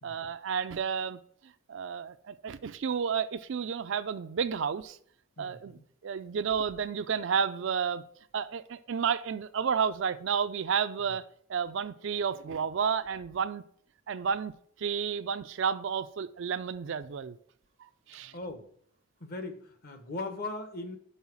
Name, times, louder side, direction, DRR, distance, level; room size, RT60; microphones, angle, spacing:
voice 1, 0.0-1.2 1.7-5.0 5.4-8.0 8.3-11.2 11.5-13.6 14.1-14.5 14.8-17.4 18.1-18.3, right 6 dB, 55° right, 0.4 m, -31 dB
voice 2, 5.4-5.8 11.0-11.1 18.3-18.7 19.2-21.0, left 2 dB, 45° left, 0.9 m, -39 dB
5.6 x 5.6 x 5.9 m
head